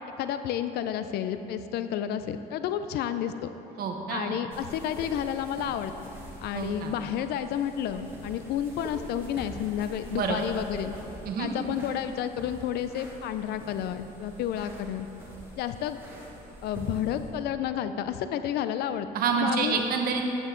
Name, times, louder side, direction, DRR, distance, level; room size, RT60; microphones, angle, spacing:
voice 1, 0.2-3.5 4.1-5.9 6.4-10.9 11.4-15.1 15.6-16.0 16.6-19.1 19.4-19.8, left 10 dB, 75° left, 10 dB, 0.4 m, -31 dB
voice 2, 3.8-4.4 6.5-6.9 10.1-10.4 11.2-11.5 19.1-20.3, right 5 dB, 60° right, 3 dB, 1.2 m, -28 dB
sound 1, 4.5-17.3, right 1 dB, 15° right, 2.0 m, -45 dB
9.9 x 8.8 x 3.8 m, 3.0 s
cardioid pair, 110°, 17 cm